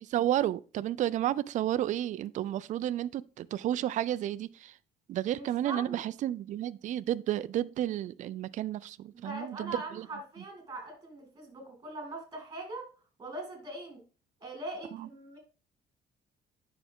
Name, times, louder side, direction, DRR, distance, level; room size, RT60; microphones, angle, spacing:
voice 1, 0.0-4.7 5.1-10.1 15.0-15.1, right 12 dB, 45° right, 0.4 m, -32 dB
voice 2, 5.3-6.1 9.1-12.9 13.2-14.0 14.4-15.4, right 2 dB, 20° right, 2.9 m, -41 dB
9.3 x 5.7 x 3.6 m
cardioid pair, 155°, 17 cm